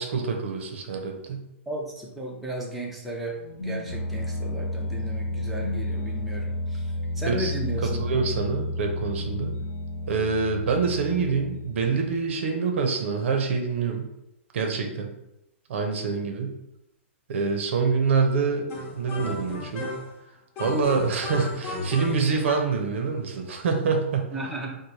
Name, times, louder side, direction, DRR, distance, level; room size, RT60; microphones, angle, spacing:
voice 1, 0.0-1.4 7.3-7.5 7.8-9.6 10.1-14.1 14.5-15.1 15.7-16.6 17.3-19.9 20.6-24.3, right 5 dB, 65° right, 3 dB, 0.6 m, -26 dB
voice 2, 1.7-8.1 24.3-24.8, right 1 dB, ahead, -4 dB, 0.6 m, -35 dB
sound 1, 3.4-12.2, left 1 dB, 90° left, 0.5 m, -31 dB
sound 2, 18.7-20.2 20.6-22.8, left 2 dB, 35° left, 1.0 m, -34 dB
3.1 x 2.1 x 3.9 m, 0.85 s
hypercardioid pair, 130°, 7 cm